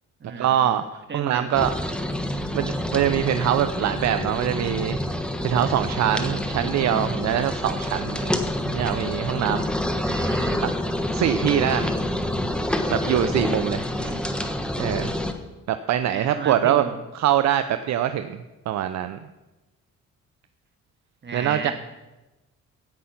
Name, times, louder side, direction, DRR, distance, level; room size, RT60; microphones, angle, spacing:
voice 1, 0.4-1.7 2.5-5.0 5.4-8.3 8.6-9.7 10.6-10.7 11.1-11.9 12.9-13.8 14.8-15.1 15.7-16.8 17.1-19.2 21.3-21.7, right 11 dB, 65° right, 10 dB, 0.6 m, -23 dB
voice 2, 1.1-1.5 6.5-6.7 10.0-10.6 14.0-14.2 16.1-16.9 21.2-21.7, right 4 dB, 35° right, 5 dB, 1.7 m, -34 dB
sound 1, 1.5-15.3, left 1 dB, 5° left, 1.1 m, -27 dB
16.5 x 5.6 x 5.8 m, 1.1 s
cardioid pair, 90°, 30 cm